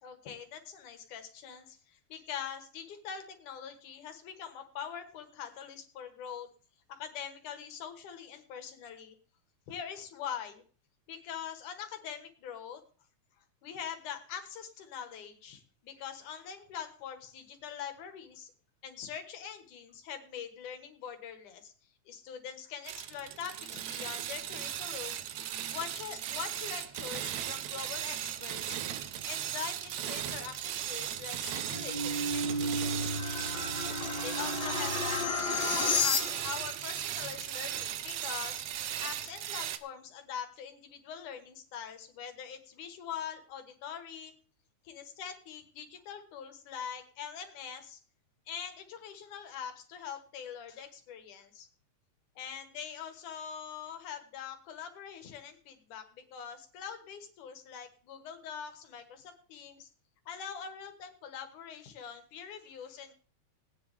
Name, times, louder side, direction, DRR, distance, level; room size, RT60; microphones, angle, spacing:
voice 1, 0.0-6.5 6.9-9.1 9.7-10.6 11.1-12.8 13.6-18.5 18.8-21.7 22.1-25.2 25.7-28.8 29.2-33.1 34.2-38.6 39.0-44.3 44.8-48.0 48.5-51.7 52.4-59.9 60.3-63.1, left 8 dB, 85° left, 8 dB, 3.1 m, -43 dB
sound 1, 22.8-39.8, right 11 dB, 70° right, 2.1 m, -37 dB
sound 2, 31.5-36.7, left 2 dB, 55° left, 3.1 m, -32 dB
18.5 x 10.0 x 3.5 m, 0.42 s
omnidirectional pair, 3.5 m